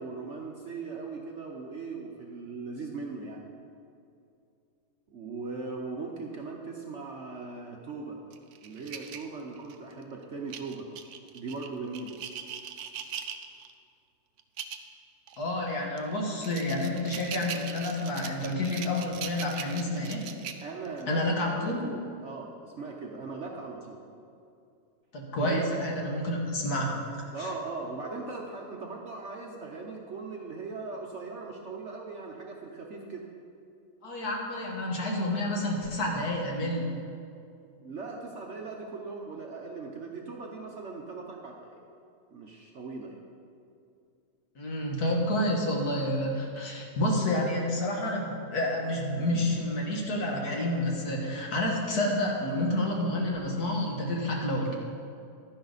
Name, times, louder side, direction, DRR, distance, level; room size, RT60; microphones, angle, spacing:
voice 1, 0.0-3.4 5.1-8.2 8.6-10.9 11.3-12.1 20.6-24.0 25.4-25.7 27.3-33.2 37.8-41.8 42.3-43.2 47.3-47.5, right 4 dB, 50° right, 0 dB, 1.0 m, -39 dB
sound 1, 8.3-9.9 10.5-13.7 14.4-14.9 15.3-15.4 16.0-21.0, right 8 dB, 70° right, 1.1 m, -40 dB
voice 2, 15.4-20.2 21.1-21.8 25.1-27.5 34.0-36.9 44.6-54.7, left 1 dB, 60° left, -1 dB, 2.0 m, -29 dB
12.0 x 10.5 x 4.0 m, 2.5 s
omnidirectional pair, 1.9 m